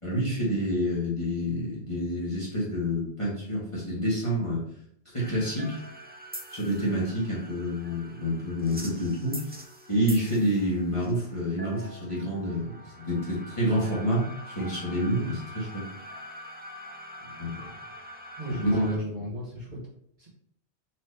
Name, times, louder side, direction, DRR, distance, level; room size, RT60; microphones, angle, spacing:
voice 1, 0.0-4.6 5.0-5.8 6.5-9.4 9.9-15.9 17.4-17.6 18.6-18.9, equal, 25° left, -7 dB, 1.4 m, -28 dB
sound 1, 5.2-19.0, equal, 15° right, 0.4 m, -44 dB
voice 2, 18.4-19.8 20.2-20.3, right 1 dB, 40° right, -6 dB, 1.2 m, -34 dB
4.3 x 2.9 x 3.2 m, 0.70 s
omnidirectional pair, 1.2 m